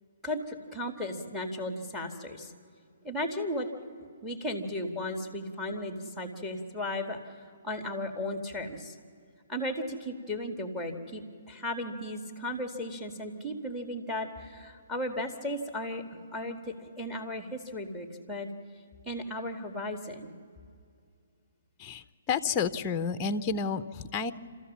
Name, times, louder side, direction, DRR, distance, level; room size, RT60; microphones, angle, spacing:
voice 1, 0.2-2.5 3.0-3.7 4.2-7.2 7.6-8.9 9.5-18.5 19.1-20.3, left 1 dB, ahead, 6 dB, 1.8 m, -35 dB
voice 2, 21.8-24.3, left 5 dB, 20° left, 12 dB, 0.6 m, -30 dB
28.0 x 14.0 x 7.3 m, 2.3 s
hypercardioid pair, 150°, 0 cm